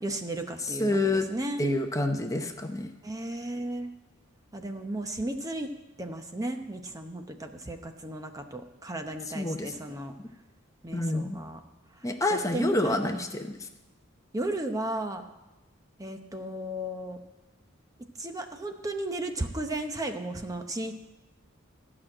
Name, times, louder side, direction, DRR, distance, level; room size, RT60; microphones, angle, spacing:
voice 1, 0.0-1.7 3.0-3.9 4.5-5.7 6.0-10.1 10.8-11.6 12.3-13.2 14.3-15.2 16.0-17.2 18.2-20.9, right 1 dB, 15° right, 5 dB, 0.8 m, -34 dB
voice 2, 0.6-1.3 1.6-2.9 9.3-9.7 10.9-11.4 12.0-13.7, left 2 dB, 15° left, 5 dB, 0.8 m, -28 dB
14.0 x 6.1 x 8.8 m, 1.0 s
head